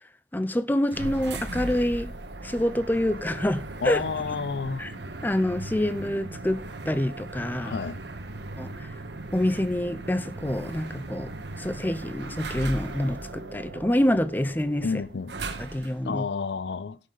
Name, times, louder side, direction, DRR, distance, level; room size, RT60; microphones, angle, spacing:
voice 1, 0.3-2.1 2.4-4.0 4.8-4.9 5.2-6.6 6.9-7.7 8.6-8.9 9.3-11.3 11.6-14.9 15.6-16.2, left 1 dB, 10° left, 0.5 m, -26 dB
sound 1, 0.9-16.1, right 2 dB, 75° right, 1.3 m, -38 dB
voice 2, 3.8-4.9 7.6-8.0 14.8-15.3 16.0-17.0, left 5 dB, 75° left, 0.5 m, -30 dB
16.5 x 6.6 x 3.8 m
head